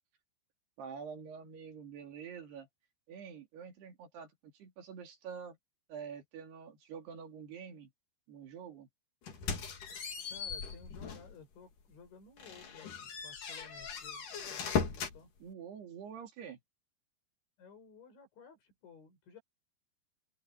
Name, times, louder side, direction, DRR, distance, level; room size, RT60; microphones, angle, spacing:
voice 1, 0.8-2.7 3.1-5.6 5.9-7.9 8.3-8.9 15.4-16.6, right 7 dB, 65° right, 4.6 m, -47 dB
sound 1, 9.3-11.4 11.8-11.9 12.4-15.2, left 6 dB, 50° left, 4.1 m, -38 dB
voice 2, 10.3-15.3 17.6-19.4, left 5 dB, 80° left, 9.9 m, -56 dB
open air
omnidirectional pair, 5.2 m